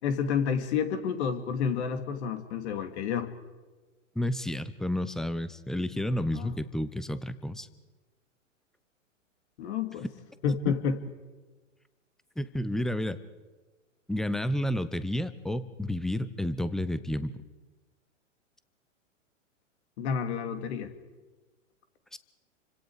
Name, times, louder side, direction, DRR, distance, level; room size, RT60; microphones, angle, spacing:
voice 1, 0.0-3.3 6.3-6.5 9.6-10.1 10.4-11.0 20.0-20.9, left 6 dB, 55° left, 8 dB, 2.7 m, -29 dB
voice 2, 4.1-7.7 10.5-10.7 12.4-13.2 14.1-17.3 22.1-22.2, left 1 dB, ahead, 14 dB, 0.8 m, -31 dB
29.5 x 25.5 x 4.9 m, 1.3 s
hypercardioid pair, 115°, 39 cm